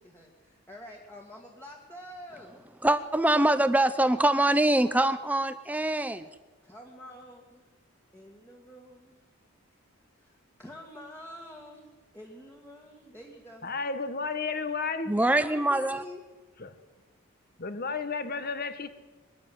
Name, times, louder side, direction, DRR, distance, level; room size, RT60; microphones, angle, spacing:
voice 1, 0.0-2.6 6.6-7.7 8.1-9.2 10.1-11.9 12.1-13.7 15.1-16.2, equal, 10° left, 2.1 m, -47 dB
voice 2, 2.8-6.3 15.1-16.0, right 1 dB, 5° right, 0.7 m, -24 dB
voice 3, 13.6-15.1 16.6-16.7 17.6-18.9, left 4 dB, 45° left, 1.4 m, -32 dB
22.0 x 12.5 x 9.5 m
head